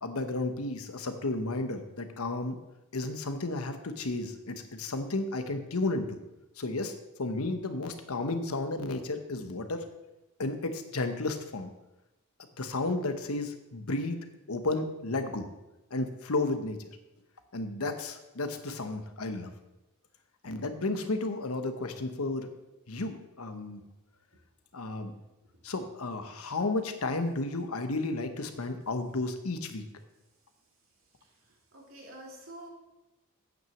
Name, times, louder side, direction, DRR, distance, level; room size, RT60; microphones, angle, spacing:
voice 1, 0.0-2.6 2.9-6.2 6.6-9.9 10.4-11.7 12.6-14.2 14.5-15.5 15.9-16.9 17.5-19.5 20.4-22.5 22.9-23.8 24.7-25.1 25.6-29.8, left 2 dB, 75° left, 8 dB, 1.1 m, -33 dB
voice 2, 31.2-32.7, right 1 dB, 65° right, -2 dB, 2.9 m, -48 dB
9.1 x 6.1 x 7.1 m, 0.98 s
head